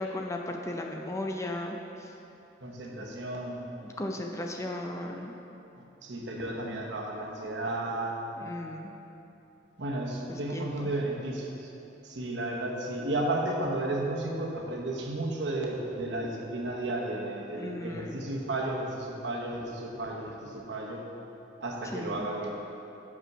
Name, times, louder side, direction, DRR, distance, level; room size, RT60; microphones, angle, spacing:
voice 1, 0.0-2.1 3.0-3.1 3.8-5.4 8.4-9.0 10.2-10.9 17.5-18.2 21.9-22.3, left 1 dB, 15° left, 2 dB, 0.4 m, -36 dB
voice 2, 2.6-3.7 6.0-8.2 9.8-11.7 12.0-21.0 21.6-22.6, right 2 dB, 70° right, 0 dB, 0.9 m, -33 dB
6.0 x 5.4 x 6.0 m, 3.0 s
head